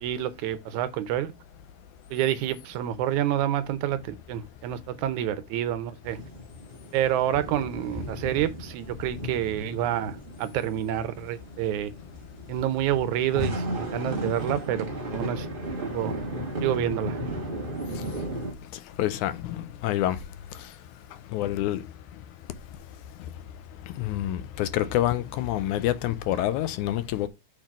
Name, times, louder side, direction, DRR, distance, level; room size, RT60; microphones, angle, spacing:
voice 1, 0.0-1.3 2.1-6.2 6.9-11.9 12.5-14.9 15.1-15.5 15.8-16.2 16.6-17.2, right 11 dB, 75° right, 2.0 m, -28 dB
sound 1, 6.0-18.5, equal, 40° right, 0.7 m, -35 dB
voice 2, 19.0-20.2 21.3-21.9 24.0-27.3, left 13 dB, 80° left, 2.0 m, -27 dB
6.6 x 3.9 x 4.6 m
omnidirectional pair, 3.6 m